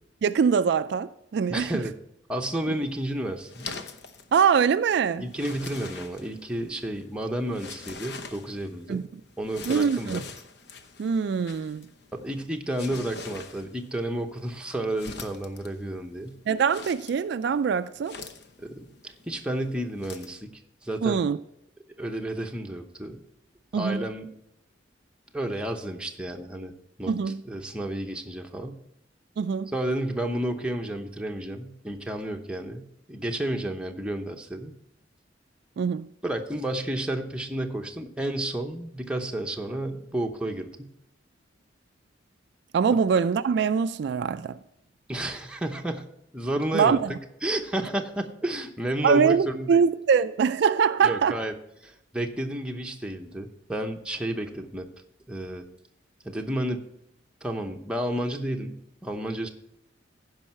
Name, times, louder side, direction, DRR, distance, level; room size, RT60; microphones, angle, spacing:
voice 1, 0.2-1.8 2.7-2.8 4.3-5.2 8.9-9.1 9.7-10.2 11.0-11.9 16.5-18.2 21.0-21.4 23.7-24.1 27.1-27.4 29.4-29.7 35.8-36.1 42.7-44.6 46.7-47.1 49.0-51.3, right 6 dB, 60° right, 0.3 m, -23 dB
voice 2, 1.5-1.9 2.3-3.7 5.2-9.1 9.4-10.3 12.1-16.4 18.6-20.5 20.8-21.3 22.0-23.2 23.7-24.3 25.3-26.7 27.0-27.1 27.5-28.8 29.7-34.7 36.2-40.9 45.1-46.1 46.3-47.0 47.4-49.8 51.0-51.5 51.8-54.9 55.3-55.7 56.2-56.8 57.4-59.5, right 1 dB, 5° right, 0.8 m, -31 dB
sound 1, 2.6-20.4, left 4 dB, 60° left, 0.8 m, -44 dB
15.5 x 5.5 x 4.4 m
head